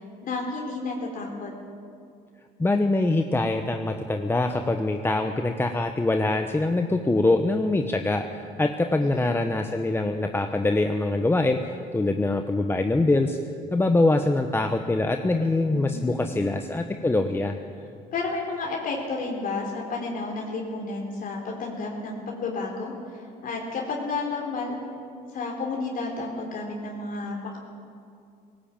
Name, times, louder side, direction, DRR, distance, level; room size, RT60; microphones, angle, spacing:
voice 1, 0.2-1.5 9.0-9.3 15.7-16.3 18.1-24.8 25.3-27.6, left 3 dB, 55° left, 0 dB, 3.8 m, -31 dB
voice 2, 2.6-13.4 13.7-17.5, left 2 dB, 15° left, 6 dB, 1.0 m, -24 dB
18.5 x 18.5 x 8.9 m, 2.4 s
cardioid pair, 110°, 17 cm